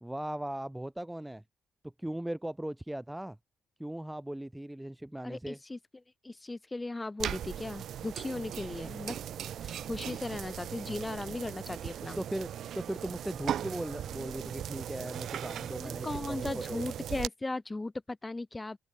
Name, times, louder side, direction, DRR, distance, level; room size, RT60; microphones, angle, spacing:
voice 1, 0.0-1.4 2.0-3.4 3.8-5.6 12.2-12.5 12.7-16.8, right 1 dB, 5° right, 0.9 m, -38 dB
voice 2, 5.2-5.8 6.2-9.2 9.6-12.2 15.8-18.8, left 2 dB, 15° left, 0.7 m, -37 dB
sound 1, 7.2-17.3, right 10 dB, 70° right, 0.4 m, -38 dB
open air
cardioid pair, 90°, 0 cm